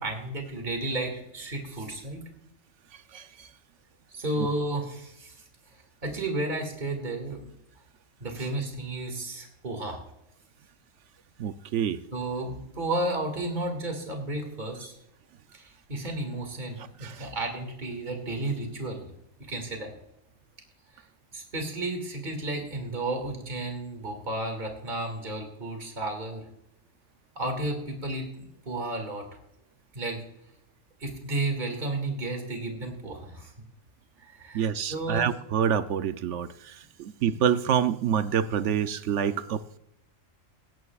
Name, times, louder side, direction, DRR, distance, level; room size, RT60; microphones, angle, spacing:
voice 1, 0.0-2.2 4.1-5.3 5.7-7.5 8.2-10.0 12.1-14.9 15.5-19.1 19.5-19.9 21.0-21.1 21.3-26.4 27.4-29.3 29.9-30.2 31.0-33.5 34.2-35.3 37.2-37.4, right 2 dB, 35° right, 3 dB, 2.3 m, -33 dB
voice 2, 3.1-3.5 4.4-4.5 11.4-12.0 17.0-17.3 34.5-39.8, right 8 dB, 70° right, 12 dB, 0.9 m, -27 dB
17.5 x 15.5 x 2.4 m, 0.82 s
omnidirectional pair, 1.3 m